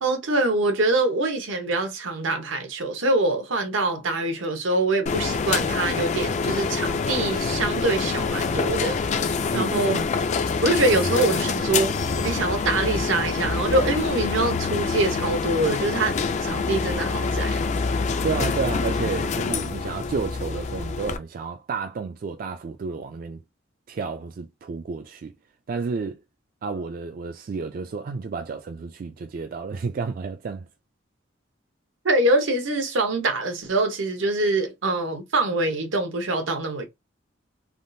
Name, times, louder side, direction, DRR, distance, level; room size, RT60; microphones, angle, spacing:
voice 1, 0.0-9.0 9.5-9.9 10.6-16.2 16.4-17.7 32.0-36.9, right 2 dB, 85° right, 0.9 m, -24 dB
sound 1, 5.1-21.2, left 4 dB, 40° left, 0.3 m, -26 dB
voice 2, 9.5-10.1 18.2-23.4 23.9-25.3 25.7-26.2 26.6-30.7, right 4 dB, 45° right, 0.3 m, -31 dB
3.5 x 2.3 x 2.6 m
head